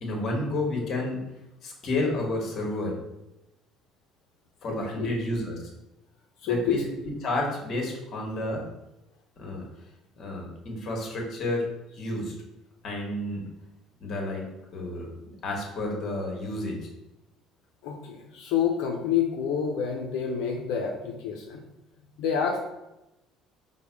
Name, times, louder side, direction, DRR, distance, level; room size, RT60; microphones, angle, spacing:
voice 1, 0.0-1.2 1.6-2.9 4.6-5.6 6.5-6.9 7.2-8.6 9.4-9.6 10.2-11.6 11.9-12.3 12.8-13.4 14.0-14.4 14.7-15.1 15.4-16.8, left 1 dB, 45° left, 0 dB, 1.4 m, -30 dB
voice 2, 4.7-5.2 6.4-6.8 17.8-21.6 22.2-22.7, left 7 dB, 85° left, 1 dB, 0.5 m, -28 dB
5.3 x 2.2 x 4.6 m, 0.94 s
cardioid pair, 125°, 0 cm